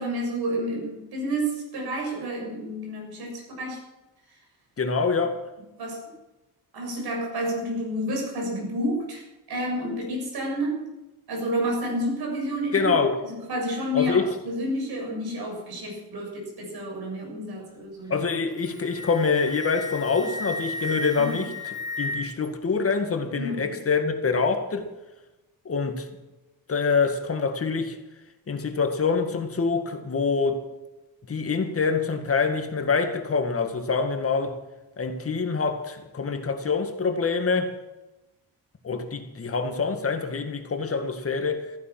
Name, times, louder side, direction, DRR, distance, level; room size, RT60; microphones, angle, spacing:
voice 1, 0.0-3.8 5.8-6.1 6.7-10.9 11.3-12.9 13.3-18.2 21.2-21.4 23.3-23.8, equal, 75° right, 7.2 m, -30 dB
voice 2, 4.8-5.4 12.7-13.2 13.9-14.3 18.1-24.9 25.7-26.1 26.7-28.0 28.5-30.7 31.3-34.6 35.0-37.8 38.8-41.7, left 4 dB, 35° left, 2.0 m, -25 dB
Wind instrument woodwind instrument, 18.5-22.5, left 1 dB, 10° right, 2.2 m, -34 dB
15.0 x 15.0 x 6.1 m
cardioid pair, 140°, 38 cm